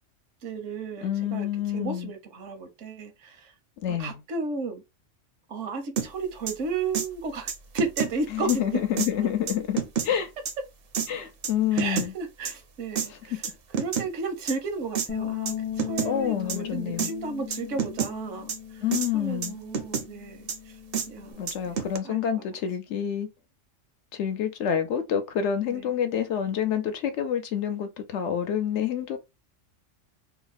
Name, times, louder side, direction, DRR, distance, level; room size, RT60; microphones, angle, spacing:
voice 1, 0.4-3.5 3.9-4.8 5.5-8.8 11.7-18.8 19.1-20.8 21.1-22.3 25.6-25.9, right 4 dB, 75° right, 1.1 m, -34 dB
voice 2, 1.0-2.1 3.8-4.1 8.3-9.8 10.0-10.3 11.1-12.1 16.1-17.1 18.8-19.5 21.4-23.3 24.1-29.2, left 9 dB, 70° left, 0.9 m, -28 dB
sound 1, 6.0-6.1 6.5-6.6 6.9-7.1 7.5-8.1 8.5-8.6 9.0-9.1 9.5-10.1 10.4-10.5 10.9-11.1 11.4-12.1 12.4-12.5 12.9-13.1 13.4-14.1 14.5-14.6 14.9-15.1 15.5-15.6 15.8-16.1 16.5-16.6 17.0-17.1 17.5-18.1 18.5-18.6 18.9-19.1 19.4-20.1 20.5-20.6 20.9-21.1 21.5-22.0, right 7 dB, 55° right, 0.7 m, -28 dB
Bass guitar, 15.1-21.3, left 9 dB, 10° left, 0.3 m, -37 dB
2.9 x 2.1 x 3.9 m
omnidirectional pair, 1.3 m